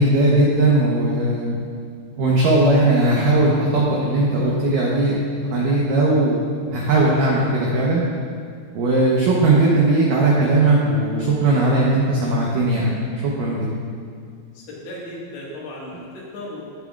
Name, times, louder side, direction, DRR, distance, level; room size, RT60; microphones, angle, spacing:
voice 1, 0.0-1.6 2.2-5.2 5.4-6.4 6.7-8.0 8.8-13.7, right 2 dB, 90° right, -4 dB, 1.8 m, -18 dB
voice 2, 14.6-16.6, left 1 dB, 70° left, -5 dB, 3.9 m, -35 dB
17.0 x 7.7 x 2.4 m, 2.2 s
omnidirectional pair, 5.4 m